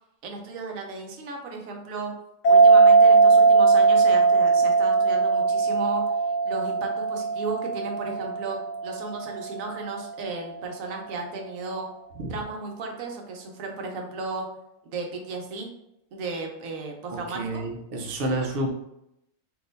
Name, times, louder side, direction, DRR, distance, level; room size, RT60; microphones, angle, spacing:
voice 1, 0.2-2.1 2.5-11.9 12.3-14.5 14.9-15.7 16.1-17.6, right 3 dB, 80° right, 2 dB, 1.1 m, -34 dB
sound 1, 2.4-9.5, right 4 dB, 70° left, 1.0 m, -19 dB
voice 2, 17.1-18.7, right 1 dB, 55° right, 1 dB, 0.7 m, -29 dB
3.7 x 2.6 x 2.5 m, 0.82 s
omnidirectional pair, 1.4 m